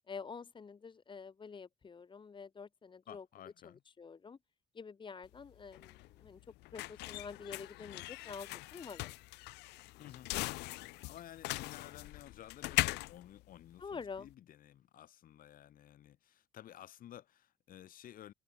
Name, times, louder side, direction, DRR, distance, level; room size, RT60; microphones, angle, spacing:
voice 1, 0.1-3.3 3.6-3.7 4.0-4.4 4.7-6.4 6.7-9.2 13.8-14.3, left 5 dB, 30° left, 1.8 m, -47 dB
voice 2, 3.1-3.8 10.0-10.7 11.0-18.3, left 11 dB, 55° left, 1.2 m, -54 dB
sound 1, 5.2-14.3, left 21 dB, 85° left, 0.6 m, -40 dB
cardioid pair, 110°, 17 cm